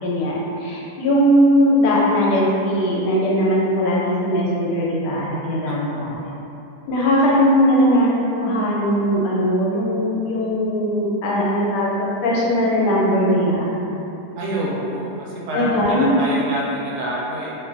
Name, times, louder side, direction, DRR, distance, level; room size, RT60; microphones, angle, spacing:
voice 1, 0.0-6.1 6.9-11.9 12.2-13.7 15.5-16.1, equal, 85° left, -5 dB, 1.2 m, -19 dB
voice 2, 5.7-6.1 14.4-17.5, right 1 dB, 75° right, -5 dB, 1.0 m, -27 dB
2.7 x 2.2 x 2.4 m, 2.9 s
omnidirectional pair, 1.8 m